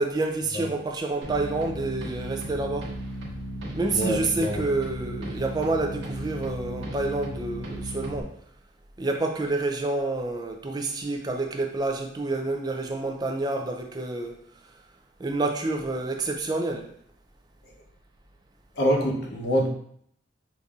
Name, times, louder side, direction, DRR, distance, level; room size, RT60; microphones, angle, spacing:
voice 1, 0.0-2.9 3.7-8.3 9.0-14.4 15.2-16.9, right 2 dB, 20° right, 0.3 m, -28 dB
sound 1, 1.2-8.2, right 1 dB, 75° right, 1.0 m, -35 dB
voice 2, 3.9-4.7 18.7-19.7, equal, 55° left, 0.7 m, -25 dB
5.1 x 2.6 x 2.3 m
head